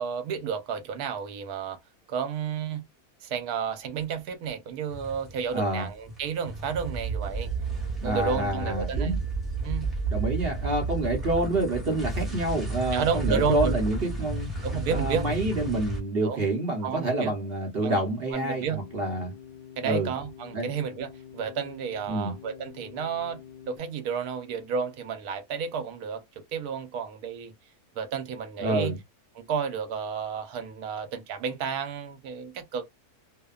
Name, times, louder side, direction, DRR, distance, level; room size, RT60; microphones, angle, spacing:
voice 1, 0.0-1.8 2.1-2.8 3.2-7.5 8.0-9.2 9.6-9.9 12.9-13.7 14.6-15.3 16.2-16.5 16.8-17.3 17.8-18.0 18.3-18.8 19.8-26.2 26.5-27.5 28.0-29.0 29.4-32.9, right 6 dB, 80° right, 1.1 m, -31 dB
sound 1, 4.9-5.7 5.9-16.0, right 3 dB, ahead, 0.9 m, -32 dB
voice 2, 5.5-5.9 8.0-9.2 10.1-14.5 14.9-19.3 19.8-20.1 20.5-20.7 22.1-22.3 28.6-29.0, right 1 dB, 50° right, 0.8 m, -27 dB
sound 2, 18.3-23.8, left 9 dB, 40° left, 0.7 m, -47 dB
2.8 x 2.1 x 2.3 m
omnidirectional pair, 1.6 m